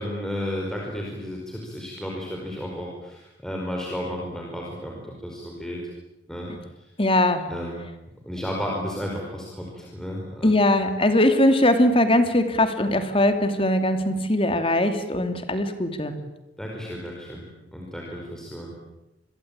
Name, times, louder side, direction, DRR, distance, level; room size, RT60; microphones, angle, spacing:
voice 1, 0.0-5.8 6.3-6.5 7.5-7.8 8.2-10.5 16.6-17.5 17.7-18.7, equal, 5° left, -2 dB, 5.1 m, -33 dB
voice 2, 7.0-7.4 10.4-16.1, left 1 dB, 30° left, 8 dB, 2.9 m, -21 dB
28.5 x 22.5 x 9.0 m, 0.98 s
head